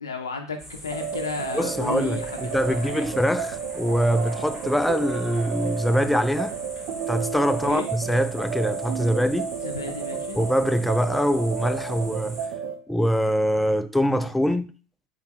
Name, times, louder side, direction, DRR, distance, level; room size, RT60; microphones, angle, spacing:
voice 1, 0.0-0.6 0.8-2.2 2.7-3.1 7.7-7.9 9.6-10.4, left 4 dB, 85° left, 0.5 m, -32 dB
sound 1, 0.6-12.5, equal, 15° right, 1.6 m, -43 dB
sound 2, 0.9-12.8, right 7 dB, 55° right, 0.6 m, -32 dB
voice 2, 1.5-6.5 7.1-9.5 10.3-12.4 12.9-14.7, equal, 5° left, 0.3 m, -23 dB
Human voice / Clapping / Cheering, 1.6-7.6, right 4 dB, 40° right, 1.9 m, -47 dB
3.9 x 3.5 x 2.9 m
hypercardioid pair, 80°, 2 cm